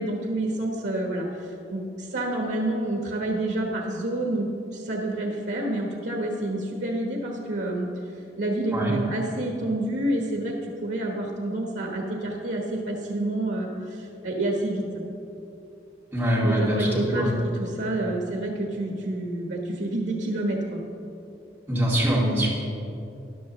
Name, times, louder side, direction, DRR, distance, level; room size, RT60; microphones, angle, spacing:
voice 1, 0.0-7.9 8.4-10.5 10.8-14.8 16.4-20.8, right 1 dB, 80° right, 0 dB, 1.1 m, -28 dB
voice 2, 16.1-17.3 21.7-22.5, equal, 10° right, -8 dB, 2.3 m, -23 dB
14.0 x 10.5 x 3.1 m, 2.8 s
head